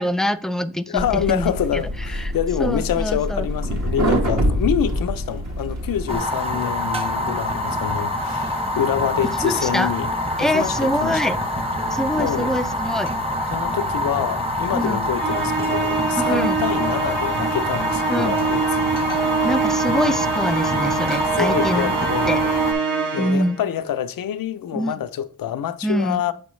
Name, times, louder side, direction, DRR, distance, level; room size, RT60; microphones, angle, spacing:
voice 1, 0.0-1.8 2.1-2.3 2.6-3.5 9.4-9.9 10.4-11.4 11.9-13.1 14.7-15.0 16.2-16.6 18.1-18.3 19.4-21.9 22.3-22.5 23.2-23.6 24.7-24.9 25.8-26.2, equal, ahead, 0.4 m, -24 dB
voice 2, 0.9-10.1 10.4-11.2 12.2-12.6 13.5-18.9 21.3-22.5 23.1-26.3, left 10 dB, 80° left, 0.5 m, -26 dB
sound 1, 1.0-6.2, equal, 50° right, 1.5 m, -25 dB
Fire, 6.1-22.7, left 1 dB, 15° right, 1.0 m, -25 dB
Musical instrument, 15.2-23.7, right 5 dB, 70° right, 1.5 m, -24 dB
7.0 x 4.5 x 3.1 m
cardioid pair, 55°, 34 cm